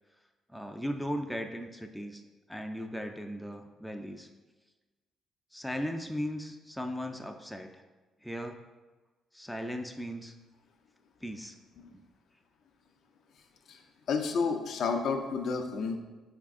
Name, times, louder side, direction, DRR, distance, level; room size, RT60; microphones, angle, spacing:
voice 1, 0.5-2.2 2.5-4.3 5.5-7.8 8.2-8.6 9.3-10.3 11.2-11.6 11.9-12.0, equal, ahead, 4 dB, 0.3 m, -37 dB
voice 2, 13.7-16.0, left 5 dB, 70° left, 4 dB, 0.4 m, -31 dB
4.5 x 3.6 x 2.4 m, 1.2 s
supercardioid pair, 70°, 0 cm